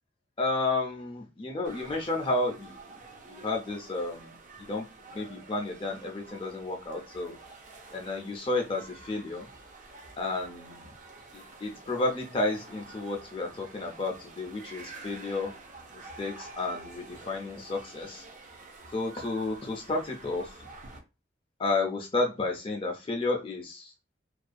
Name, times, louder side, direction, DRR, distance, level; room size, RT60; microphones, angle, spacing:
voice 1, 0.4-2.7 3.3-7.4 7.9-9.5 10.2-10.8 11.3-15.5 15.9-18.3 18.9-20.7 21.6-23.9, left 2 dB, 30° left, 2 dB, 0.4 m, -32 dB
sound 1, 1.6-21.0, right 3 dB, 45° right, 0.5 m, -49 dB
2.4 x 2.1 x 2.5 m, 0.29 s
head